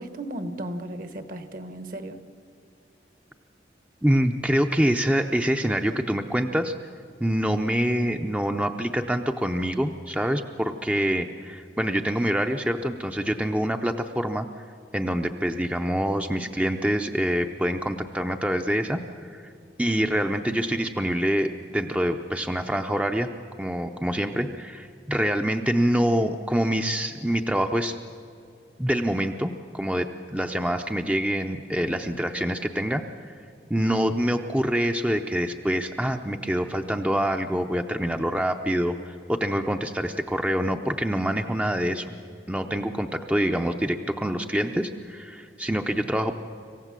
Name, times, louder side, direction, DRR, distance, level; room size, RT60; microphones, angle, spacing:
voice 1, 0.0-2.2, right 1 dB, 50° right, 10 dB, 1.3 m, -35 dB
voice 2, 4.0-6.7 7.2-14.5 14.9-19.0 19.3-19.5 19.8-23.3 23.6-28.0 28.8-33.3 33.7-42.1 42.5-46.3, equal, 10° right, 5 dB, 0.6 m, -26 dB
26.0 x 15.5 x 7.5 m, 2.6 s
head